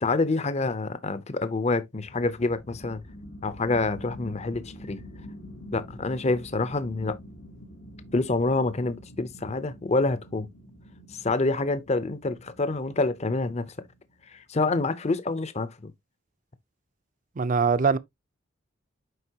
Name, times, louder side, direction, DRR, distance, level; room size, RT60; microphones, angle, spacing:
voice 1, 0.0-3.0 3.4-5.0 5.7-7.2 8.1-10.5 11.1-13.7 14.3-15.9, left 3 dB, 30° left, 0.6 m, -27 dB
sound 1, 2.0-14.1, equal, 55° left, 1.2 m, -46 dB
voice 2, 17.4-18.0, right 5 dB, 40° right, 0.5 m, -22 dB
8.0 x 5.3 x 2.8 m
head